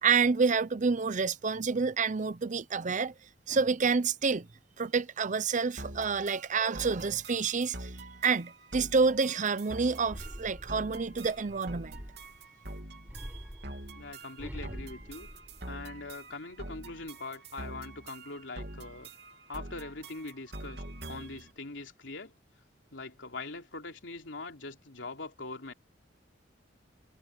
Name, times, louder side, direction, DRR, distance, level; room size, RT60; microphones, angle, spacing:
voice 1, 0.0-3.1 3.5-4.5 4.8-7.9 8.2-12.0, right 5 dB, 45° right, 0.7 m, -28 dB
sound 1, 5.8-21.5, right 1 dB, 65° right, 3.2 m, -45 dB
sound 2, 10.0-12.4 13.0-16.1 16.5-17.1, equal, 10° right, 5.2 m, -46 dB
voice 2, 13.9-15.3 15.7-19.1 19.5-22.3 22.9-25.7, left 3 dB, 90° left, 3.3 m, -42 dB
head